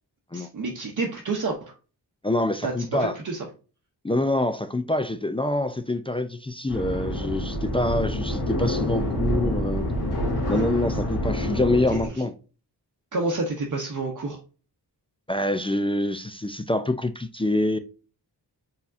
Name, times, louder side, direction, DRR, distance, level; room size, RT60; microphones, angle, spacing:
voice 1, 0.3-1.7 2.6-3.4 10.5-10.7 11.9-12.0 13.1-14.4, right 3 dB, 50° right, 0.8 m, -29 dB
voice 2, 2.2-3.1 4.0-9.9 10.5-12.3 15.3-17.8, left 1 dB, 15° left, 0.3 m, -26 dB
sound 1, 6.7-12.1, left 1 dB, 70° left, 1.8 m, -27 dB
4.5 x 3.5 x 2.5 m
cardioid pair, 55°, 41 cm